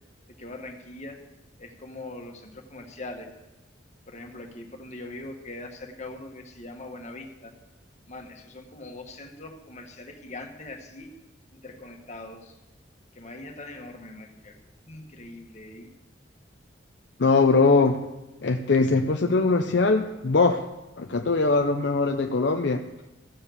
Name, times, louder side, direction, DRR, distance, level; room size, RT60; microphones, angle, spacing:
voice 1, 0.4-1.2 1.6-3.3 4.1-7.5 8.1-11.1 11.5-12.5 13.1-14.5 14.9-15.9, left 2 dB, 40° left, 2 dB, 1.6 m, -41 dB
voice 2, 17.2-18.0 18.4-20.6 21.0-22.8, left 3 dB, 65° left, 4 dB, 0.6 m, -21 dB
15.5 x 7.3 x 6.6 m, 1.0 s
head